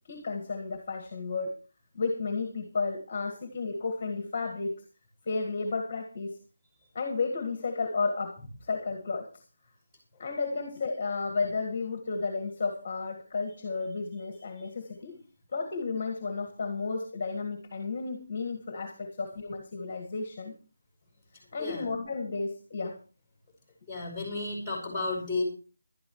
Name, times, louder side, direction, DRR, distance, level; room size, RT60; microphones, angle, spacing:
voice 1, 0.1-1.6 1.9-4.8 5.2-6.4 6.9-9.4 10.2-15.2 15.5-20.5 21.5-23.0, left 4 dB, 25° left, 5 dB, 1.7 m, -33 dB
voice 2, 23.9-25.4, left 3 dB, 5° right, -1 dB, 5.2 m, -32 dB
20.0 x 12.0 x 3.1 m, 0.35 s
figure-of-eight pair, 175°, 0 cm